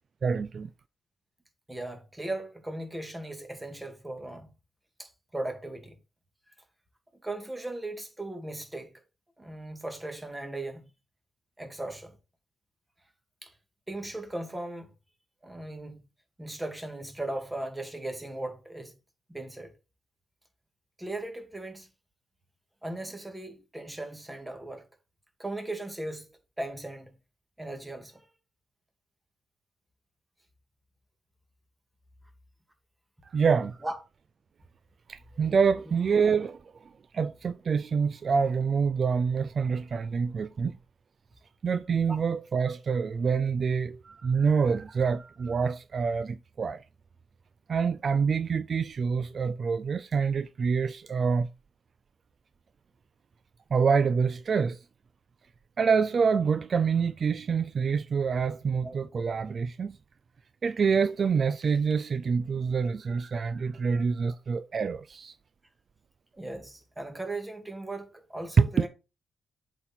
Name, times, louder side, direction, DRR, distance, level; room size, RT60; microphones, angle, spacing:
voice 1, 0.2-0.7 33.3-33.8 35.1-36.6 37.1-40.7 41.6-46.8 47.7-51.5 53.7-54.8 55.8-60.0 60.6-65.3 68.6-68.9, right 5 dB, 50° right, 0.4 m, -26 dB
voice 2, 1.7-4.5 5.0-6.0 7.2-8.9 9.4-10.8 11.6-12.1 13.4-13.5 13.9-14.9 15.4-16.0 16.4-18.9 19.3-19.7 21.0-21.9 22.8-24.8 25.4-26.3 26.6-27.1 27.6-28.3 33.8-33.9 42.1-42.2 58.8-59.0 66.3-68.9, right 2 dB, 10° right, 1.9 m, -37 dB
7.7 x 4.2 x 4.3 m
cardioid pair, 100°, 0 cm